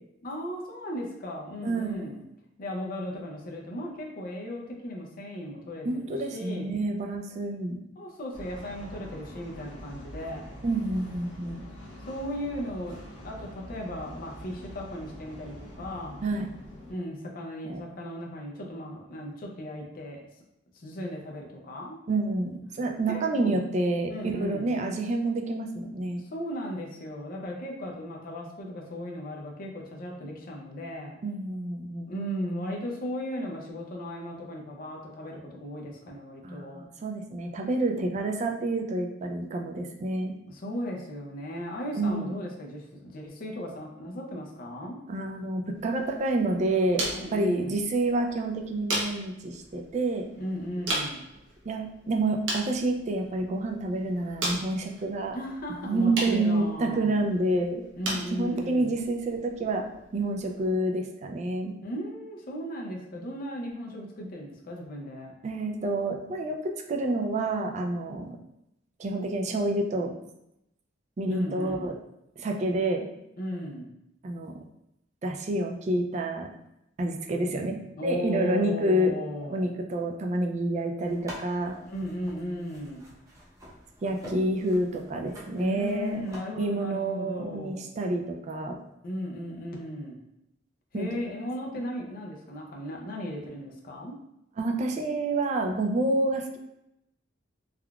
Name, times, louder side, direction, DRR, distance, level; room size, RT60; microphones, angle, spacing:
voice 1, 0.2-2.2 2.6-6.6 8.0-10.5 12.1-16.3 16.9-20.2 20.7-22.0 23.1-23.6 24.1-24.7 26.3-31.2 32.1-36.8 40.5-45.0 47.1-47.8 50.4-51.3 55.3-57.2 58.0-59.0 61.8-65.3 71.3-71.9 73.4-73.9 78.0-79.7 81.8-83.1 85.5-87.9 89.0-90.2 90.9-94.1, equal, 50° left, 0 dB, 0.5 m, -36 dB
voice 2, 1.6-2.2 5.8-7.8 10.6-11.6 16.2-16.5 17.6-17.8 22.1-26.2 31.2-32.1 36.4-40.3 42.0-42.3 45.1-47.0 47.3-50.2 51.7-55.4 55.8-57.8 58.1-59.8 60.1-61.7 65.4-68.3 69.0-70.1 71.2-71.9 72.4-73.1 74.2-74.5 75.2-76.5 77.0-79.1 79.4-81.7 84.0-86.3 86.5-88.8 90.9-91.2 94.6-96.6, right 2 dB, 40° right, 3 dB, 0.3 m, -28 dB
sound 1, 8.3-16.9, equal, 75° left, 0.9 m, -44 dB
sound 2, 45.7-60.8, right 1 dB, 75° right, 0.8 m, -38 dB
sound 3, 81.0-86.4, equal, 15° right, 0.7 m, -47 dB
3.5 x 2.3 x 2.3 m, 0.83 s
head